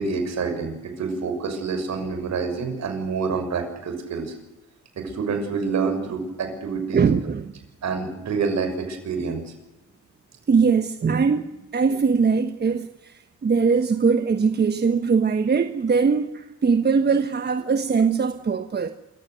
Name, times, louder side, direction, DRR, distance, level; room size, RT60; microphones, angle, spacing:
voice 1, 0.0-4.3 5.0-7.0 7.8-9.4, right 5 dB, 60° right, 6.5 m, -27 dB
voice 2, 6.9-7.5 10.5-18.9, right 5 dB, 35° right, 1.2 m, -21 dB
26.0 x 15.5 x 9.5 m
cardioid pair, 90°, 30 cm